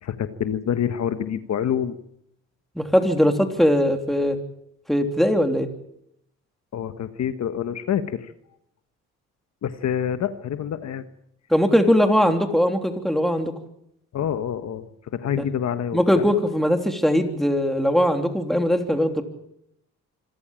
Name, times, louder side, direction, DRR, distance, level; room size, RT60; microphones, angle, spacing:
voice 1, 0.0-2.0 6.7-8.3 9.6-11.1 14.1-16.2, left 9 dB, 60° left, 11 dB, 1.3 m, -27 dB
voice 2, 2.7-4.4 4.9-5.7 11.5-13.5 15.4-15.5 15.9-19.2, equal, ahead, 5 dB, 3.2 m, -20 dB
26.0 x 14.0 x 8.9 m, 0.77 s
cardioid pair, 90°, 30 cm